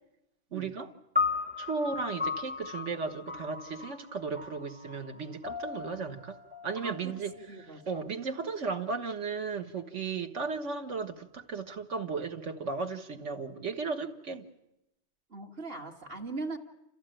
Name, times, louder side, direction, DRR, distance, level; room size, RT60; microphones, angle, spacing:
voice 1, 0.5-0.9 1.6-6.4 6.6-7.3 7.9-14.4, right 4 dB, 65° right, 1.7 m, -35 dB
sound 1, 1.2-7.6, left 4 dB, 10° right, 0.6 m, -36 dB
voice 2, 6.8-7.1 7.5-7.9 15.3-16.6, right 3 dB, 45° right, 2.1 m, -40 dB
29.0 x 14.5 x 9.0 m
omnidirectional pair, 1.4 m